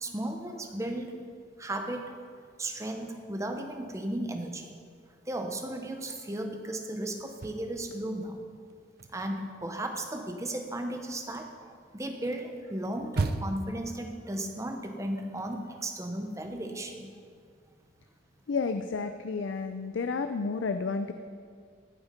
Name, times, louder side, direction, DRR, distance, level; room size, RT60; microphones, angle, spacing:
voice 1, 0.0-1.2 1.6-2.2 2.6-4.7 5.3-8.4 9.1-17.1, right 1 dB, 15° right, 4 dB, 0.9 m, -35 dB
sound 1, 7.2-8.4 8.7-13.8, right 3 dB, 55° right, 0.6 m, -37 dB
voice 2, 18.5-21.1, left 4 dB, 75° left, 8 dB, 0.5 m, -31 dB
14.5 x 7.1 x 5.1 m, 2.1 s
head